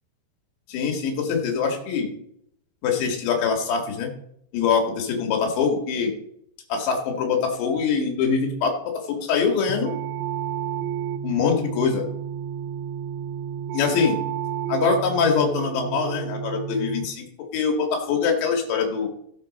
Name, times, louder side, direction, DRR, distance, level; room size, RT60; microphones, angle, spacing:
voice 1, 0.7-2.1 2.8-4.1 4.5-6.2 6.7-10.0 11.2-12.0 13.7-14.2 14.7-19.1, left 6 dB, 90° left, 2 dB, 4.2 m, -23 dB
sound 1, 9.7-17.1, right 9 dB, 85° right, 2.9 m, -31 dB
16.5 x 6.3 x 4.1 m, 0.71 s
omnidirectional pair, 5.0 m